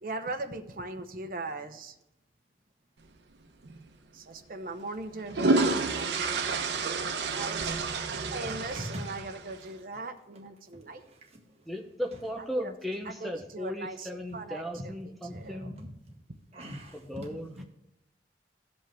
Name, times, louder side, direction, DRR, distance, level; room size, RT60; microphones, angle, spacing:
voice 1, 0.0-1.9 4.1-6.4 6.8-7.7 8.3-11.1 12.4-12.7 13.0-15.7, right 2 dB, 50° right, 6 dB, 0.9 m, -40 dB
sound 1, 3.6-3.8 5.0-9.6, right 3 dB, 85° right, 0.8 m, -29 dB
voice 2, 8.4-9.1 14.3-14.9 15.2-15.9 16.5-17.6, equal, 35° right, -2 dB, 1.6 m, -42 dB
voice 3, 11.7-15.7 16.9-17.5, equal, ahead, 2 dB, 0.6 m, -36 dB
16.0 x 5.4 x 3.4 m, 0.86 s
head